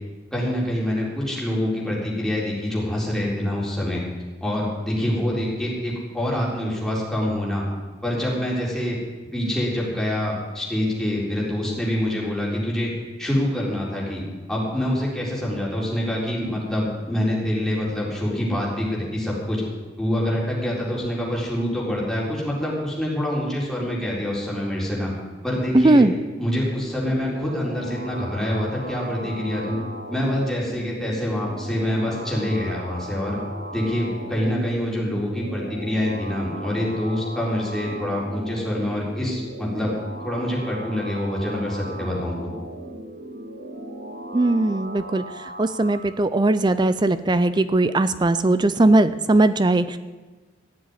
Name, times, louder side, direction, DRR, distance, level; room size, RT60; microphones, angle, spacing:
voice 1, 0.3-4.0 4.4-7.6 8.0-9.0 9.3-12.9 13.2-14.2 14.5-19.6 20.0-25.1 25.4-26.1 26.4-29.8 30.1-33.4 33.7-39.9 40.2-42.5, left 1 dB, ahead, -4 dB, 4.2 m, -26 dB
voice 2, 25.7-26.1 44.3-45.2 45.6-50.0, right 2 dB, 25° right, 13 dB, 0.5 m, -19 dB
sound 1, 26.2-46.1, right 1 dB, 55° right, 2.3 m, -37 dB
15.0 x 7.7 x 9.7 m, 1.3 s
head